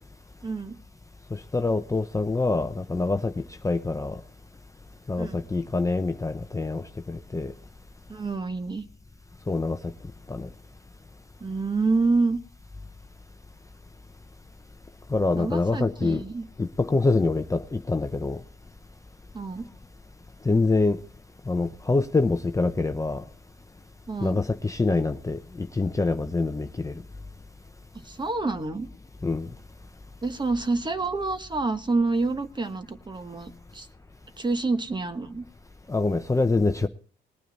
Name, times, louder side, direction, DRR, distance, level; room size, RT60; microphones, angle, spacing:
voice 1, 0.4-0.7 5.2-5.4 8.1-8.8 11.4-12.4 15.3-16.5 19.3-19.7 24.1-24.4 27.9-28.9 30.2-33.9 34.4-35.4, right 3 dB, 20° right, 9 dB, 1.3 m, -27 dB
voice 2, 1.3-4.2 5.1-7.5 9.5-9.8 10.3-10.5 15.1-16.2 16.6-18.4 20.4-21.0 21.5-23.2 24.2-27.0 29.2-29.5 35.9-36.9, left 3 dB, 15° left, 7 dB, 0.7 m, -25 dB
20.0 x 9.2 x 4.1 m, 0.41 s
cardioid pair, 90°, 20 cm